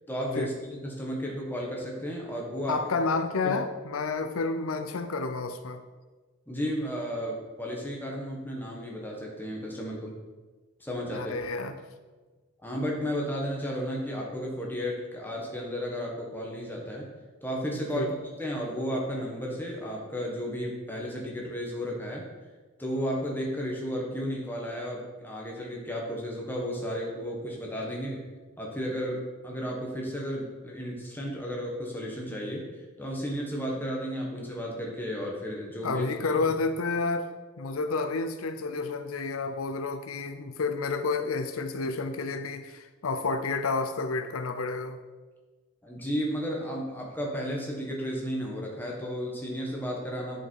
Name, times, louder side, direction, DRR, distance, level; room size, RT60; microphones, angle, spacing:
voice 1, 0.1-2.8 3.4-3.6 6.5-10.1 10.8-11.3 11.6-11.7 12.6-17.1 17.4-22.3 22.8-28.2 28.6-36.1 45.8-50.5, equal, 10° left, -2 dB, 1.5 m, -33 dB
voice 2, 2.7-5.8 11.1-11.8 17.9-18.1 35.8-45.0, left 3 dB, 90° left, 9 dB, 0.6 m, -30 dB
10.0 x 5.6 x 4.7 m, 1.3 s
head